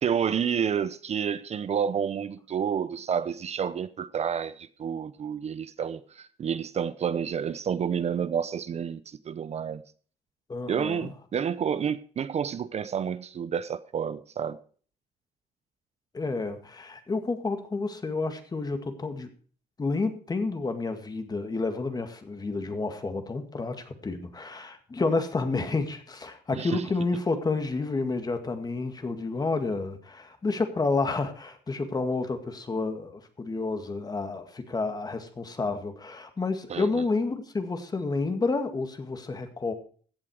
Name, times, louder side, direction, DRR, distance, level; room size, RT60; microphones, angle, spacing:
voice 1, 0.0-9.8 10.7-14.6 26.5-26.8 36.7-37.0, right 7 dB, 40° right, 0.7 m, -29 dB
voice 2, 10.5-11.1 16.1-19.3 19.8-39.7, left 3 dB, 25° left, 1.9 m, -30 dB
16.0 x 7.4 x 4.8 m
cardioid pair, 110°, 17 cm